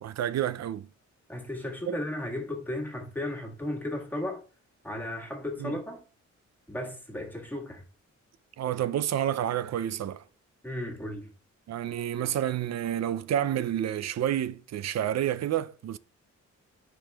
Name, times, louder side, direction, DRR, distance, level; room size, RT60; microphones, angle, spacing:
voice 1, 0.0-0.9 1.9-2.0 5.6-5.8 8.6-10.2 11.7-16.0, right 11 dB, 65° right, 0.5 m, -29 dB
voice 2, 1.3-4.4 4.8-6.0 6.7-7.8 10.6-11.3, left 1 dB, 5° left, 1.7 m, -35 dB
12.5 x 5.0 x 2.3 m
wide cardioid pair, 125°, 29 cm